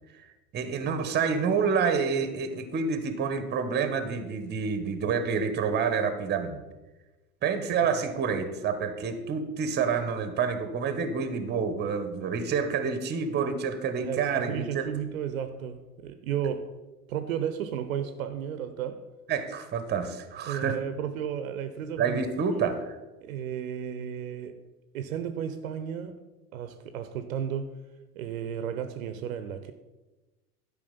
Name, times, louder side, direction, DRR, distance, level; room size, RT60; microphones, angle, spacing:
voice 1, 0.5-6.6 7.4-14.9 19.3-20.8 22.0-22.9, right 6 dB, 20° right, 9 dB, 1.0 m, -28 dB
voice 2, 14.0-16.7 17.1-19.0 20.5-22.2 22.5-22.6 23.2-24.6 24.9-26.2 26.5-27.7 28.2-29.7, right 9 dB, 60° right, 10 dB, 0.8 m, -33 dB
11.5 x 5.1 x 5.3 m, 1.1 s
figure-of-eight pair, 85°, 47 cm